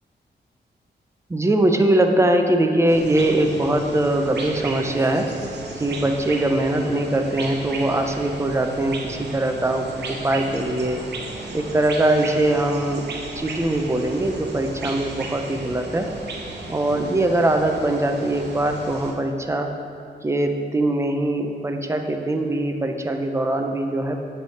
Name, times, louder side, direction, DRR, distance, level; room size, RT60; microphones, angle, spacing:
voice 1, 1.3-5.3 5.8-11.0 11.5-13.0 13.4-16.1 16.7-19.7 20.2-24.2, right 1 dB, 15° right, 5 dB, 0.5 m, -22 dB
sound 1, 2.9-19.1, right 3 dB, 70° right, 0.8 m, -35 dB
7.8 x 3.3 x 4.1 m, 2.4 s
cardioid pair, 90°, 18 cm